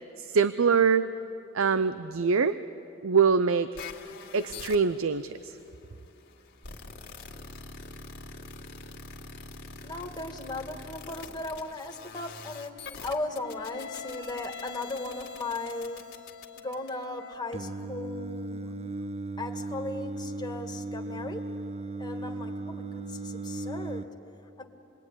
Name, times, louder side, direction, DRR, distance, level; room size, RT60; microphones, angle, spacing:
voice 1, 0.2-1.1 1.5-2.6 3.0-3.7 4.3-5.6, right 5 dB, 85° right, 13 dB, 0.6 m, -24 dB
sound 1, 3.8-17.3, left 4 dB, 55° left, 2.2 m, -44 dB
voice 2, 9.8-16.0 16.6-18.7 19.4-21.5 22.0-24.1 24.6-24.7, left 2 dB, 20° left, 3 dB, 1.8 m, -37 dB
Singing, 17.5-24.0, right 2 dB, 30° right, 0.6 m, -36 dB
27.5 x 21.5 x 9.8 m, 2.7 s
head